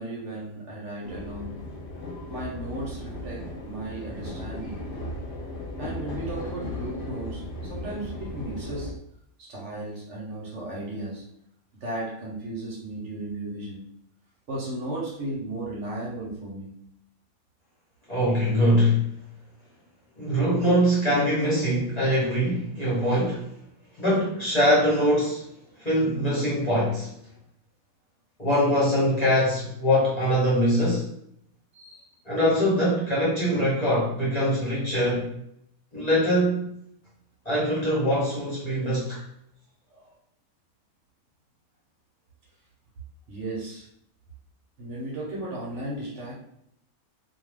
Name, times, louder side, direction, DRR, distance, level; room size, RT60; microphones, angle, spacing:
voice 1, 0.0-1.7 2.3-4.9 5.8-8.9 9.4-11.2 11.8-13.9 14.5-16.8 31.7-32.1 39.9-40.1 43.3-43.9 44.8-46.3, right 1 dB, 60° right, -5 dB, 1.0 m, -35 dB
sound 1, 1.0-8.9, left 1 dB, 60° left, 0.5 m, -36 dB
voice 2, 18.1-19.1 20.2-23.5 24.0-25.5 25.8-27.1 28.4-31.1 32.2-35.3 35.9-36.7 37.4-39.2, equal, 30° left, -8 dB, 0.9 m, -23 dB
2.6 x 2.3 x 3.2 m, 0.72 s
omnidirectional pair, 1.5 m